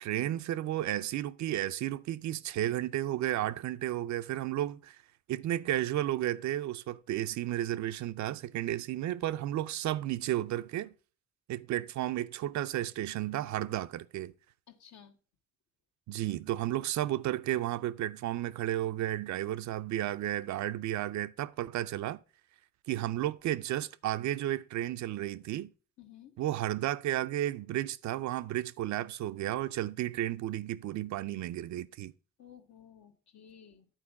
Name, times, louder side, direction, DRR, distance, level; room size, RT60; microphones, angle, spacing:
voice 1, 0.0-5.0 5.3-10.9 11.5-14.3 16.1-22.2 22.9-25.7 26.4-32.1, right 13 dB, 70° right, 0.5 m, -33 dB
voice 2, 14.7-15.2 26.0-26.4 32.4-33.9, left 9 dB, 65° left, 1.3 m, -54 dB
8.9 x 4.5 x 5.8 m
cardioid pair, 90°, 30 cm